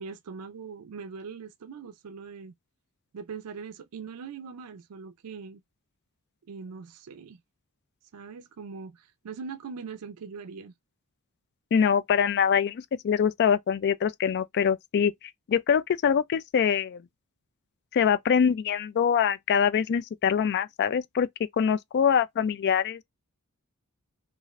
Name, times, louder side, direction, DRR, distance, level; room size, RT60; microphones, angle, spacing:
voice 1, 0.0-2.5 3.1-5.6 6.5-7.4 8.1-10.7, right 5 dB, 80° right, 0.4 m, -41 dB
voice 2, 11.7-15.1 15.5-17.0 17.9-21.3 21.6-23.0, left 7 dB, 50° left, 0.3 m, -24 dB
3.1 x 2.5 x 2.4 m
head